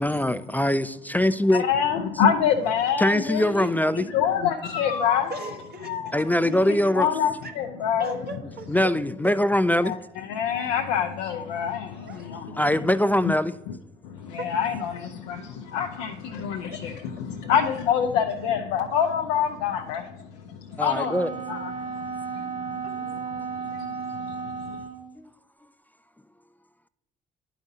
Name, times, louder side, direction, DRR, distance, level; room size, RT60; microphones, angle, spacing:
voice 1, 0.0-1.7 3.0-4.1 6.1-7.1 8.7-9.9 12.5-13.6 20.8-21.3 25.2-25.3 25.6-25.7, left 1 dB, 10° left, 0.4 m, -22 dB
voice 2, 1.5-3.7 3.9-5.6 5.8-8.2 9.8-12.6 14.0-16.9 17.2-21.2 21.5-22.8 23.4-24.8, left 8 dB, 80° left, 0.5 m, -27 dB
voice 3, 5.3-6.1 7.4-7.5 8.0-8.7 9.2-9.3 10.6-10.7 11.9-12.3 14.4-14.5 16.1-16.8 18.4-18.5 18.8-19.1 21.8-22.1 22.8-23.6, right 2 dB, 50° right, 1.0 m, -40 dB
Wind instrument woodwind instrument, 20.9-25.2, right 6 dB, 35° right, 1.4 m, -34 dB
11.0 x 4.9 x 2.7 m
hypercardioid pair, 45°, 21 cm